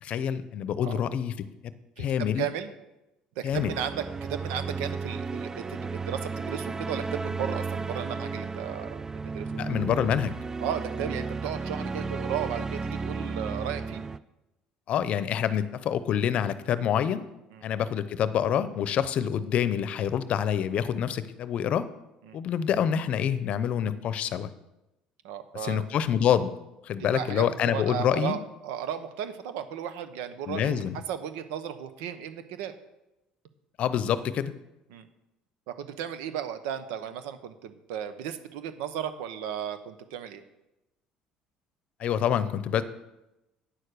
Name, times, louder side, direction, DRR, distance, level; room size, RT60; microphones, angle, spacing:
voice 1, 0.0-1.7 2.0-2.4 3.4-3.7 9.6-10.4 14.9-17.3 17.6-21.9 22.3-24.5 25.6-26.5 26.8-28.4 30.5-31.0 33.8-34.5 42.0-42.8, left 9 dB, 55° left, 14 dB, 0.7 m, -27 dB
voice 2, 2.0-2.7 3.4-9.1 9.3-9.5 10.6-14.0 17.5-17.6 22.3-22.4 25.2-25.8 27.0-32.7 34.9-35.1 35.7-40.4, right 9 dB, 90° right, 10 dB, 1.0 m, -35 dB
sound 1, 3.5-14.2, right 4 dB, 20° right, 0.4 m, -34 dB
9.4 x 6.7 x 6.6 m, 0.94 s
cardioid pair, 105°, 3 cm